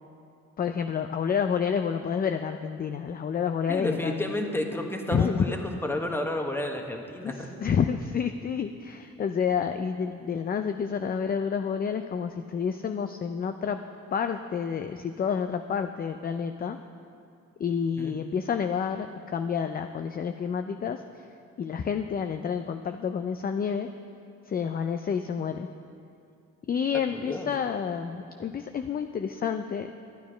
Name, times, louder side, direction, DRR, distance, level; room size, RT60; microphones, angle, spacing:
voice 1, 0.6-4.3 5.1-5.5 7.2-13.8 14.1-16.8 17.6-21.2 21.6-23.9 24.5-25.7 26.7-29.9, left 7 dB, 30° left, 7 dB, 0.4 m, -29 dB
voice 2, 3.7-7.5 18.0-18.2 27.1-27.5, left 1 dB, 5° left, 3 dB, 1.1 m, -31 dB
11.5 x 9.3 x 5.0 m, 2.5 s
cardioid pair, 90°, 30 cm